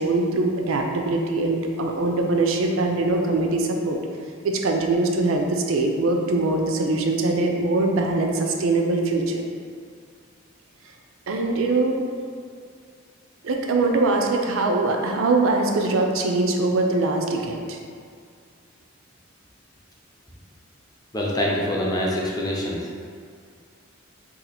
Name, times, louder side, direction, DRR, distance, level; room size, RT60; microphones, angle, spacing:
voice 1, 0.0-4.0 4.4-9.4 11.3-12.0 13.4-17.8, right 2 dB, 75° right, 2 dB, 0.4 m, -22 dB
voice 2, 21.1-22.9, left 1 dB, 20° left, -3 dB, 0.5 m, -25 dB
2.8 x 2.4 x 4.0 m, 2.1 s
head